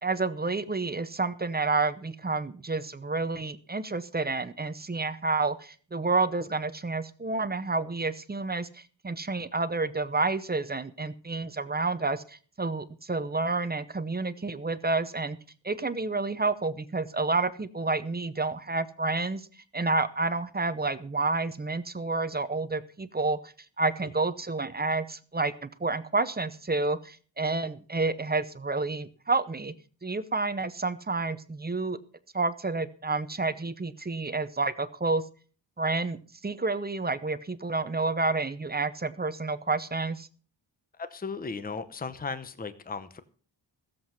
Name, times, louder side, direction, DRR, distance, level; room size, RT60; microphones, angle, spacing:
voice 1, 0.0-15.4 15.6-19.4 19.7-29.7 30.0-32.0 32.3-35.2 35.8-40.3, right 3 dB, 20° right, 13 dB, 0.7 m, -29 dB
voice 2, 41.0-43.2, left 4 dB, 20° left, 11 dB, 0.8 m, -36 dB
16.0 x 7.8 x 5.7 m, 0.42 s
wide cardioid pair, 160°, 44 cm